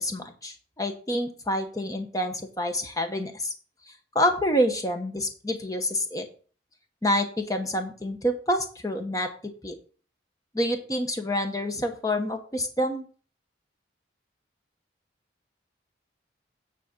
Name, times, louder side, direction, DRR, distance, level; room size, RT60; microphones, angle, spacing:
voice 1, 0.0-3.5 4.1-6.3 7.0-9.7 10.5-13.0, equal, 20° left, 6 dB, 1.0 m, -27 dB
9.1 x 4.2 x 5.7 m, 0.42 s
head